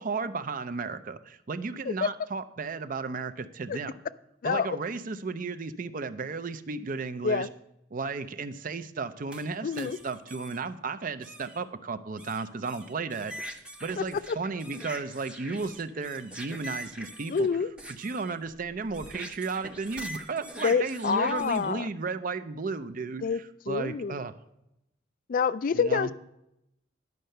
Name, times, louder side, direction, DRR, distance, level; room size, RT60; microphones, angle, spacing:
voice 1, 0.0-3.9 4.4-7.5 7.9-17.5 18.0-24.3 25.7-26.1, right 4 dB, 45° right, 11 dB, 0.5 m, -34 dB
sound 1, 9.3-10.6 11.2-11.6 12.2-21.7, equal, 5° right, 0.7 m, -43 dB
voice 2, 9.6-10.0 14.0-14.4 17.3-17.7 20.6-21.9 23.2-23.4 23.7-24.2 25.3-26.1, left 6 dB, 45° left, 16 dB, 0.3 m, -27 dB
10.5 x 5.6 x 6.5 m, 0.83 s
head